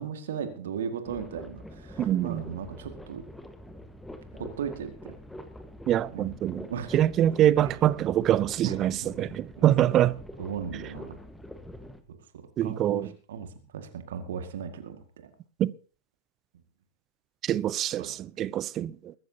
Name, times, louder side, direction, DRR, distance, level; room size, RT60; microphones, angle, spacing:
voice 1, 0.0-3.2 4.3-5.1 6.1-6.3 6.7-7.0 8.6-8.8 9.2-9.7 10.4-11.2 12.6-13.5 13.7-15.0 15.2-15.3 18.0-18.1, right 7 dB, 60° right, 2.0 m, -36 dB
sound 1, 1.1-12.0, left 1 dB, 5° left, 1.5 m, -45 dB
voice 2, 2.0-2.4 5.9-6.7 6.9-10.1 12.6-13.1 15.6-15.7 17.4-19.1, right 12 dB, 30° right, 0.5 m, -24 dB
22.0 x 13.0 x 2.9 m
figure-of-eight pair, 90°, 0 cm